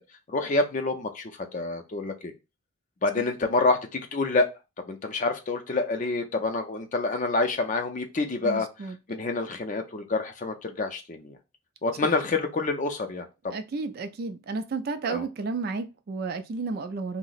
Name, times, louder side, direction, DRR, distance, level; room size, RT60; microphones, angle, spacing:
voice 1, 0.3-2.3 3.0-4.5 4.9-8.7 9.1-11.4 11.8-13.5 15.1-15.2, left 3 dB, 35° left, 0.5 m, -27 dB
voice 2, 8.4-9.0 13.5-17.2, right 4 dB, 45° right, 0.3 m, -32 dB
2.8 x 2.0 x 3.9 m
head